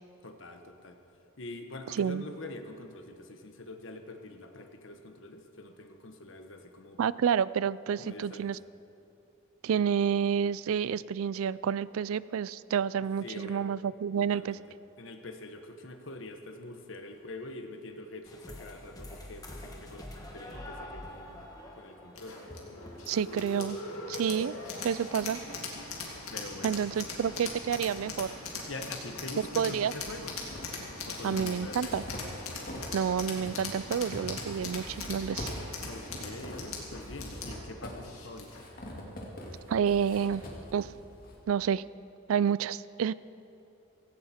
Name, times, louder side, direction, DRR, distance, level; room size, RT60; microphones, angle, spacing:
voice 1, 0.2-1.0 1.4-7.0 8.0-8.5 13.2-13.6 14.2-14.6 15.0-21.5 21.8-22.4 26.3-27.4 28.7-30.4 31.0-32.0 35.8-38.6, left 2 dB, 65° left, 5 dB, 1.2 m, -44 dB
voice 2, 7.0-8.6 9.6-14.6 23.1-23.8 24.1-24.6 24.8-25.4 26.6-28.3 29.6-29.9 31.2-32.0 32.9-35.5 39.7-40.4 40.7-40.9 41.5-41.8 42.3-43.1, right 7 dB, 80° right, 19 dB, 0.3 m, -29 dB
sound 1, 18.3-23.7, left 1 dB, 15° left, 1.5 m, -46 dB
sound 2, 22.2-38.7, left 3 dB, 85° left, 2.4 m, -40 dB
sound 3, 30.0-32.9 33.2-41.4, left 1 dB, 40° left, 2.3 m, -43 dB
17.0 x 16.0 x 4.4 m, 2.8 s
head